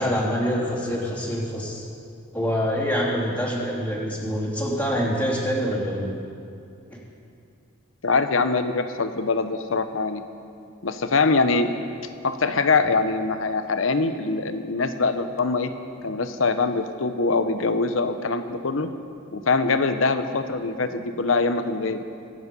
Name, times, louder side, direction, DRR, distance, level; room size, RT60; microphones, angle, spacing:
voice 1, 0.0-1.8 2.3-6.1 6.9-7.0, equal, 10° left, -6 dB, 3.1 m, -25 dB
voice 2, 8.0-10.2 10.8-11.7 12.2-15.7 16.0-18.9 19.3-22.0, left 3 dB, 70° left, 9 dB, 0.9 m, -23 dB
25.0 x 8.7 x 5.4 m, 2.5 s
head